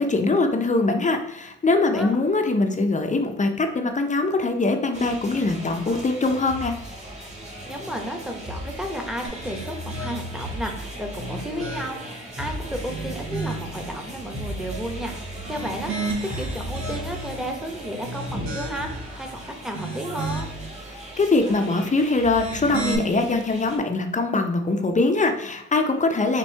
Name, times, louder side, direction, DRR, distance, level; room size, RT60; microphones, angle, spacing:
voice 1, 0.0-6.7 21.2-26.4, left 3 dB, 25° left, 5 dB, 0.6 m, -22 dB
sound 1, 4.9-23.8, right 1 dB, 20° right, 1.4 m, -37 dB
voice 2, 7.6-20.5, equal, ahead, 3 dB, 0.9 m, -33 dB
sound 2, 9.2-10.5 11.1-12.2 12.7-13.8 15.3-17.4 17.9-19.1 19.6-20.7 22.2-23.0, right 2 dB, 65° right, 1.1 m, -33 dB
4.4 x 2.7 x 4.4 m, 0.75 s
cardioid pair, 90°, 30 cm